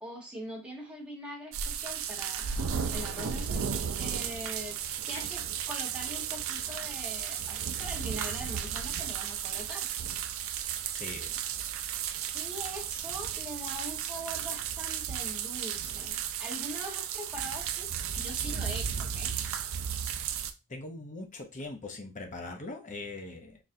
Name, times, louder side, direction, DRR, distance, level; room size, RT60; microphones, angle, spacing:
voice 1, 0.0-2.7 2.9-4.8 5.1-9.9 12.3-17.9 18.2-19.3, equal, 5° right, 1.3 m, -42 dB
sound 1, 1.5-20.5, right 8 dB, 60° right, 0.4 m, -34 dB
voice 2, 10.9-11.4 20.7-23.6, left 2 dB, 35° left, 0.7 m, -41 dB
4.0 x 3.0 x 2.6 m
head